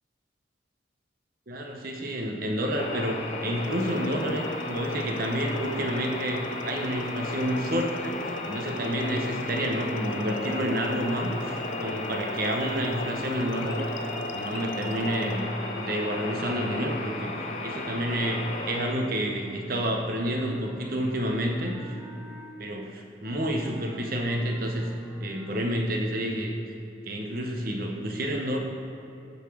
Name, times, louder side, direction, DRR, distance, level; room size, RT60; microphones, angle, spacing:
voice 1, 1.5-13.9 14.3-15.5 15.7-17.3 17.6-22.0 22.6-24.9 25.2-26.5 27.1-28.6, equal, 50° right, 2 dB, 0.9 m, -29 dB
sound 1, 2.8-18.9, left 2 dB, 35° left, 0.7 m, -34 dB
sound 2, 3.6-15.5, left 3 dB, 90° left, 0.5 m, -44 dB
Wind instrument woodwind instrument, 19.3-22.6 23.2-26.0, right 2 dB, 15° right, 0.7 m, -48 dB
9.0 x 4.1 x 6.2 m, 2.7 s
head